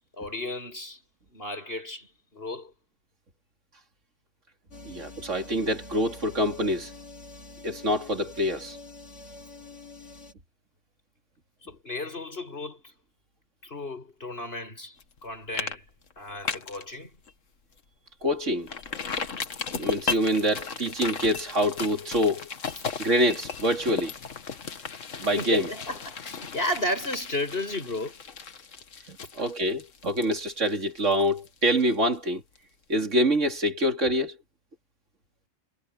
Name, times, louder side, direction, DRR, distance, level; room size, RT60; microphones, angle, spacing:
voice 1, 0.2-1.0 1.3-2.7 11.6-12.9 13.6-15.9 16.2-17.2 25.4-28.2, left 1 dB, 50° left, 6.7 m, -34 dB
sound 1, 4.7-10.3, left 2 dB, 70° left, 5.7 m, -45 dB
voice 2, 4.8-6.9 7.6-8.8 18.2-18.7 19.8-22.5 23.0-24.1 25.2-25.7 29.1-32.4 32.9-34.4, equal, 80° right, 3.4 m, -25 dB
sound 2, 15.0-15.2 15.5-15.8 16.1-16.8 17.3-17.4 17.8-17.9 18.7-32.2 32.5-32.6, left 5 dB, 90° left, 1.8 m, -36 dB
omnidirectional pair, 1.3 m